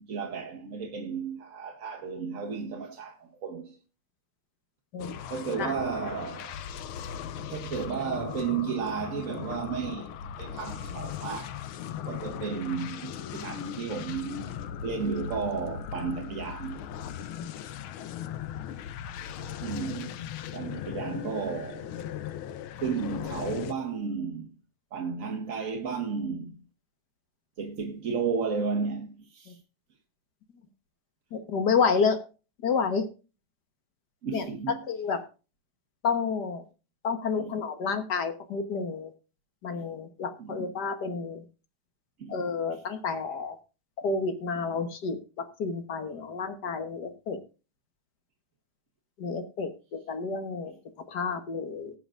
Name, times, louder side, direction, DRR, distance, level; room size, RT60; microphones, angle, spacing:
voice 1, 0.0-3.8 5.3-6.6 7.5-11.6 12.0-16.9 19.6-20.2 20.5-21.9 22.8-24.5 24.9-26.6 27.6-29.6 34.2-34.8 37.4-37.5 40.4-40.7 42.2-42.8, right 5 dB, 45° right, 1.2 m, -33 dB
sound 1, 5.0-23.7, left 9 dB, 90° left, 1.6 m, -38 dB
voice 2, 31.3-32.2 32.6-33.1 34.3-34.5 34.9-35.2 36.0-36.6 37.0-39.1 39.6-41.4 42.3-43.6 44.0-47.4 49.2-50.7 51.1-51.9, left 5 dB, 55° left, 1.7 m, -30 dB
19.5 x 7.9 x 2.5 m
omnidirectional pair, 2.3 m